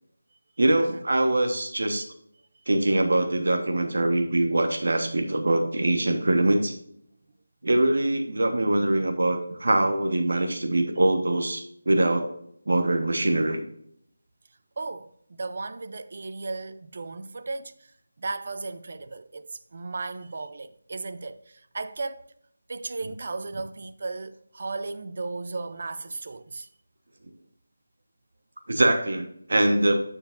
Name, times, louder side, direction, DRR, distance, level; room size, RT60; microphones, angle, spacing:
voice 1, 0.6-2.0 2.7-6.7 7.6-12.3 12.7-13.6 28.7-30.0, right 1 dB, 70° right, 1.3 m, -23 dB
voice 2, 14.8-17.7 18.2-22.3 22.7-26.7, right 3 dB, 40° right, 0.5 m, -35 dB
9.3 x 7.1 x 2.6 m
figure-of-eight pair, 175°, 0 cm